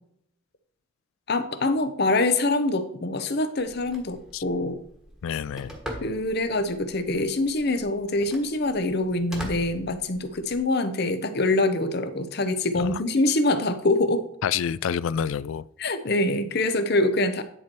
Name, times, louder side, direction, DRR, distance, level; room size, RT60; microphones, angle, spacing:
voice 1, 1.3-4.8 6.0-14.2 15.8-17.4, left 2 dB, 50° left, 0.8 m, -24 dB
Telephone, 3.6-10.6, equal, ahead, 1.4 m, -42 dB
voice 2, 5.2-5.7 12.8-13.0 14.4-15.7, left 8 dB, 70° left, 0.3 m, -28 dB
10.0 x 4.6 x 4.6 m
head